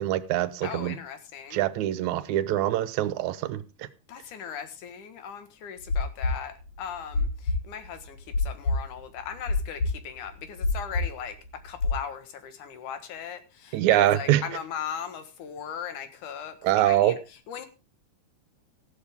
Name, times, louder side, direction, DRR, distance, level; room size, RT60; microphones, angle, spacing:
voice 1, 0.0-1.0 1.5-3.9 13.7-14.4 16.6-17.2, right 13 dB, 75° right, 2.2 m, -24 dB
voice 2, 0.6-1.6 4.1-11.4 11.6-17.2 17.5-17.7, left 8 dB, 85° left, 3.0 m, -38 dB
sound 1, 5.8-12.0, left 3 dB, 55° left, 4.2 m, -27 dB
14.0 x 11.5 x 3.6 m
omnidirectional pair, 3.5 m